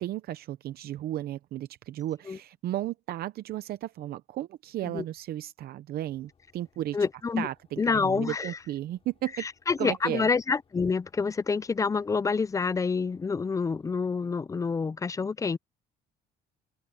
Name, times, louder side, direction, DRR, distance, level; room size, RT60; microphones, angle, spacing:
voice 1, 0.0-7.0 7.4-9.5 9.8-10.3, right 13 dB, 65° right, 0.7 m, -34 dB
sound 1, 6.1-14.1, left 6 dB, 35° left, 6.3 m, -67 dB
voice 2, 6.9-7.5 7.8-8.6 9.4-15.6, left 5 dB, 20° left, 0.4 m, -27 dB
open air
cardioid pair, 110°, 17 cm